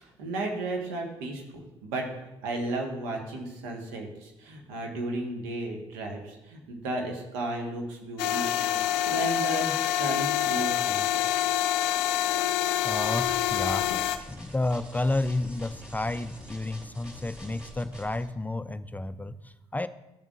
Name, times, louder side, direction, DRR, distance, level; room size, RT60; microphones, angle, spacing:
voice 1, 0.0-2.1 2.4-8.8 9.0-11.2, right 2 dB, 75° right, 2 dB, 1.4 m, -34 dB
sound 1, 8.2-14.2, left 11 dB, 75° left, 0.5 m, -26 dB
voice 2, 12.8-13.9 14.3-19.9, left 2 dB, 10° left, 12 dB, 0.3 m, -31 dB
sound 2, 12.9-18.3, equal, 10° right, 3.3 m, -46 dB
13.5 x 7.1 x 2.4 m, 1.0 s
hypercardioid pair, 55°, 14 cm